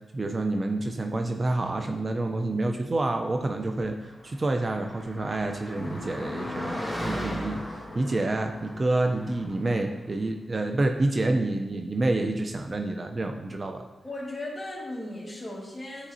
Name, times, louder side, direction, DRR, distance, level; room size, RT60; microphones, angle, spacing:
voice 1, 0.1-13.8, right 2 dB, 40° right, 4 dB, 0.5 m, -28 dB
Car passing by, 3.9-9.8, equal, 5° right, 1.9 m, -38 dB
sound 1, 5.7-9.7, left 2 dB, 50° left, 0.5 m, -41 dB
voice 2, 14.0-16.1, left 1 dB, 25° left, -3 dB, 1.7 m, -36 dB
10.0 x 4.0 x 2.7 m, 1.2 s
cardioid pair, 80°, 0 cm